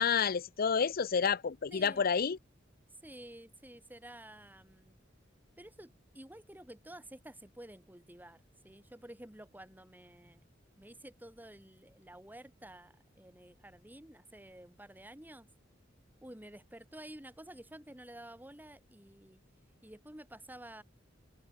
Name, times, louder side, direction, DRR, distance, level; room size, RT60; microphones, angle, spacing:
voice 1, 0.0-2.4, left 6 dB, 50° left, 0.6 m, -29 dB
voice 2, 1.7-2.1 3.0-5.0 5.6-10.5 10.8-15.5 16.2-19.4 19.8-20.8, right 1 dB, 10° right, 3.7 m, -51 dB
head